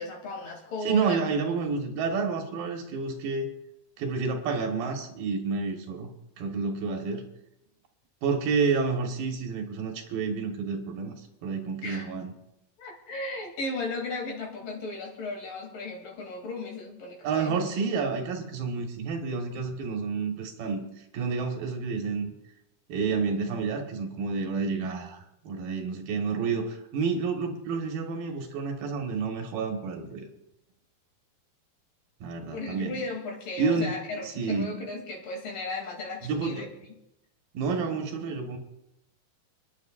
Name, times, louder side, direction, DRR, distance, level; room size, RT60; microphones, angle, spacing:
voice 1, 0.0-1.2 11.8-12.1 12.8-17.6 32.5-36.7, left 2 dB, 65° left, -1 dB, 4.3 m, -35 dB
voice 2, 0.8-3.5 4.0-6.1 6.4-7.2 8.2-11.1 11.4-12.3 17.2-20.8 21.1-22.3 22.9-30.3 32.2-33.0 33.6-34.0 34.2-34.8 36.2-36.7 37.5-38.6, right 5 dB, 80° right, 3 dB, 3.2 m, -29 dB
29.5 x 10.5 x 2.5 m, 0.84 s
omnidirectional pair, 4.1 m